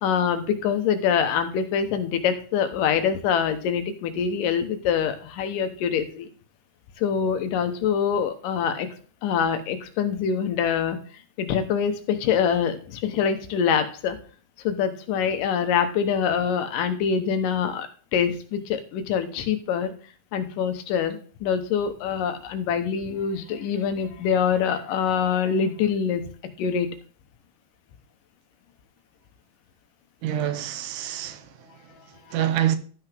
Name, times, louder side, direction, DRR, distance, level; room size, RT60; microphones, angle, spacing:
voice 1, 0.0-6.3 7.0-8.9 9.2-11.0 11.4-14.2 14.6-19.9 20.3-26.2 26.6-26.9, left 7 dB, 85° left, 2.7 m, -25 dB
voice 2, 30.2-32.8, right 11 dB, 80° right, 2.3 m, -27 dB
13.0 x 5.8 x 3.5 m
omnidirectional pair, 3.7 m